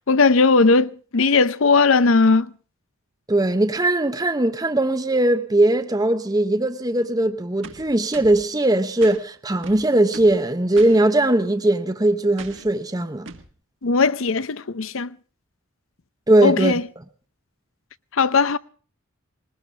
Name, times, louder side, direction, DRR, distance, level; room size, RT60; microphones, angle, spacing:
voice 1, 0.1-2.5 13.8-15.1 16.4-16.8 18.1-18.6, left 4 dB, 65° left, 0.7 m, -18 dB
voice 2, 3.3-13.3 16.3-16.7, right 1 dB, 15° right, 0.8 m, -19 dB
sound 1, 7.6-8.4 9.0-9.2 9.6-10.4 10.8-11.0 12.4-12.7 13.3-13.5, right 4 dB, 60° right, 1.6 m, -40 dB
21.0 x 20.0 x 3.3 m
head